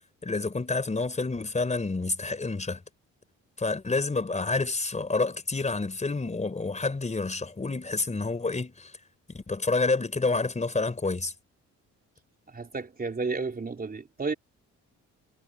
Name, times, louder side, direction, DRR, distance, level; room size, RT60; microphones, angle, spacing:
voice 1, 0.2-2.8 3.6-8.9 9.3-11.3, left 3 dB, 25° left, 4.3 m, -28 dB
voice 2, 12.5-14.3, right 4 dB, 30° right, 4.1 m, -32 dB
cardioid pair, 90°, 30 cm